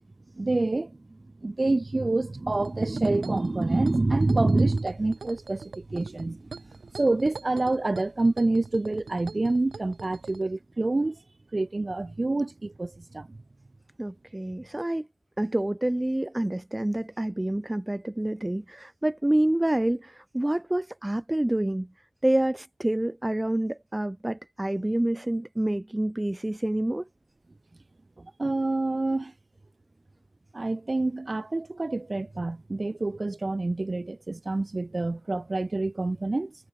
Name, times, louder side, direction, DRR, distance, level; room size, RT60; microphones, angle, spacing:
voice 1, 0.3-6.6 7.0-11.2 11.5-13.4 28.2-29.3 30.5-36.5, right 2 dB, 30° right, 1.4 m, -27 dB
sound 1, 2.5-10.4, right 4 dB, 55° right, 4.2 m, -44 dB
voice 2, 14.0-15.1 15.4-21.9 22.2-27.1, right 1 dB, 15° right, 0.3 m, -27 dB
cardioid pair, 80°, 0 cm